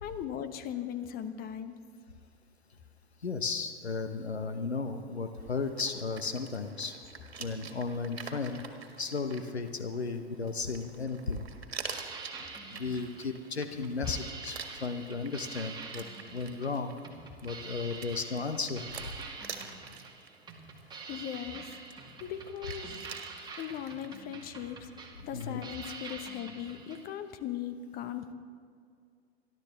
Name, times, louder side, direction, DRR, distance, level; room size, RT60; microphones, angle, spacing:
voice 1, 0.0-1.7 21.1-21.7 22.2-23.0 23.6-24.9 25.2-28.3, left 10 dB, 30° left, 9 dB, 1.0 m, -38 dB
voice 2, 3.2-7.0 7.4-8.6 9.0-11.5 12.7-16.1 16.3-16.9 17.4-19.1 25.3-25.6, left 4 dB, 90° left, 7 dB, 1.0 m, -34 dB
sound 1, 5.4-24.2, right 5 dB, 75° right, 1.7 m, -48 dB
sound 2, 11.8-27.0, right 4 dB, 15° right, 2.1 m, -46 dB
27.5 x 12.0 x 3.4 m, 2.2 s
figure-of-eight pair, 100°, 31 cm